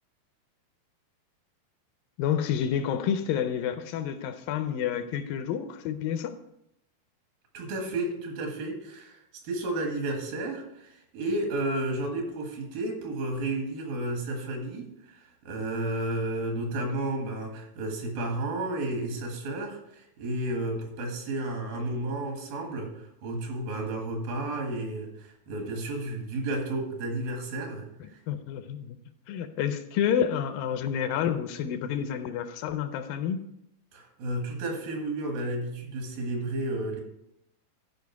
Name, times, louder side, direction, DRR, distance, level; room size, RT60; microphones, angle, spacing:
voice 1, 2.2-6.4 28.3-29.0 29.3-33.5, left 8 dB, 80° left, 2.3 m, -29 dB
voice 2, 7.5-9.2 9.4-27.9 33.9-37.0, right 2 dB, 80° right, 3.5 m, -32 dB
13.0 x 5.0 x 4.6 m
omnidirectional pair, 4.1 m